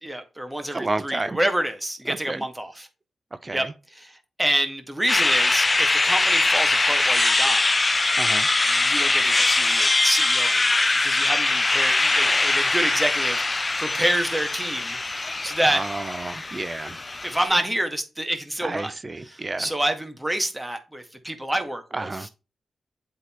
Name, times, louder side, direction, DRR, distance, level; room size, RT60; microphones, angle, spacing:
voice 1, 0.0-2.9 3.5-3.7 3.9-7.7 8.7-15.0 15.3-15.8 17.2-18.9 19.2-22.3, right 1 dB, 10° right, 1.8 m, -27 dB
voice 2, 0.7-1.4 2.1-2.4 3.4-3.7 8.2-8.5 15.7-17.0 18.6-19.7 21.9-22.3, right 2 dB, 35° right, 0.7 m, -31 dB
sound 1, 5.1-17.5, left 3 dB, 35° left, 0.5 m, -22 dB
8.0 x 3.9 x 4.4 m
supercardioid pair, 45°, 0 cm